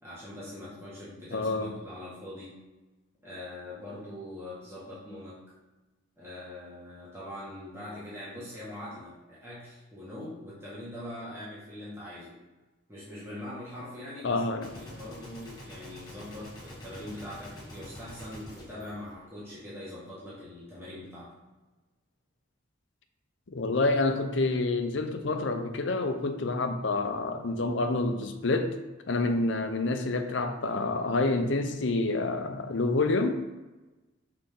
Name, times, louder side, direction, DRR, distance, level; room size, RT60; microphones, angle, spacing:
voice 1, 0.0-2.6 3.2-5.4 6.2-12.4 12.9-14.4 14.7-21.3, left 1 dB, 15° right, -10 dB, 1.7 m, -42 dB
voice 2, 1.3-1.7 14.2-14.7 23.5-28.8 29.1-33.4, left 2 dB, 65° left, 7 dB, 0.6 m, -28 dB
Gunshot gunfire, 14.6-19.8, left 1 dB, 20° left, 1.6 m, -46 dB
6.4 x 4.4 x 3.7 m, 1.1 s
head